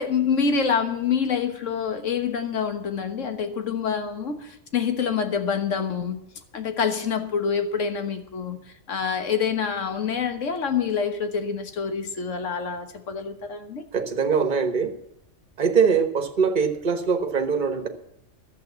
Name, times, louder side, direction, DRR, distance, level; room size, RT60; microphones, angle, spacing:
voice 1, 0.0-6.2 6.5-8.6 8.9-13.8, left 6 dB, 80° left, 7 dB, 1.6 m, -26 dB
voice 2, 13.9-14.9 15.6-17.9, right 6 dB, 40° right, 7 dB, 1.3 m, -22 dB
12.0 x 7.7 x 8.1 m, 0.81 s
omnidirectional pair, 1.3 m